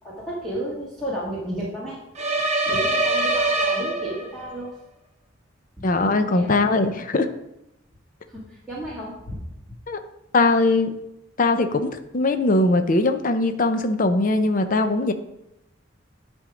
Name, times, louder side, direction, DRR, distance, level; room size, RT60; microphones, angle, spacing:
voice 1, 0.0-2.0 2.6-4.8 5.8-5.9 6.3-6.5 8.3-9.4, right 1 dB, ahead, -8 dB, 1.7 m, -32 dB
sound 1, 2.2-4.5, right 2 dB, 35° right, 1.1 m, -23 dB
voice 2, 5.8-7.3 9.9-10.0 10.3-10.9 11.4-15.1, left 2 dB, 45° left, 8 dB, 0.6 m, -20 dB
10.5 x 3.6 x 5.1 m, 0.87 s
head